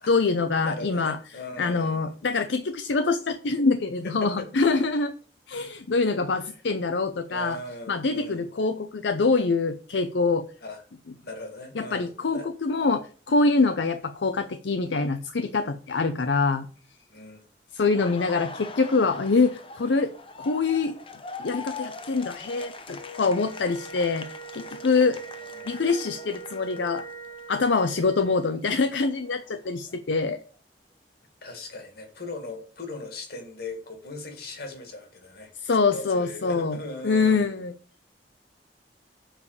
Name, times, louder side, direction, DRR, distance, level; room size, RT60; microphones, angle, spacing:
voice 1, 0.1-1.2 1.6-5.1 5.5-7.6 7.9-10.5 11.7-16.7 17.7-20.1 20.4-20.9 21.4-24.3 24.5-25.2 25.6-27.0 27.5-30.4 35.6-36.8 37.0-37.7, left 4 dB, 80° left, 9 dB, 0.6 m, -24 dB
voice 2, 0.6-2.1 4.0-4.5 7.3-8.4 10.6-10.8 11.2-12.5 17.1-17.5 25.1-25.2 25.5-25.7 31.4-35.5 35.9-37.6, left 2 dB, 60° left, 5 dB, 2.0 m, -39 dB
Laughter, 17.8-27.6 28.0-30.0, left 4 dB, 30° left, 0.8 m, -42 dB
Wind instrument woodwind instrument, 22.9-28.5, right 4 dB, 15° left, 1.4 m, -42 dB
7.4 x 5.0 x 6.7 m, 0.40 s
head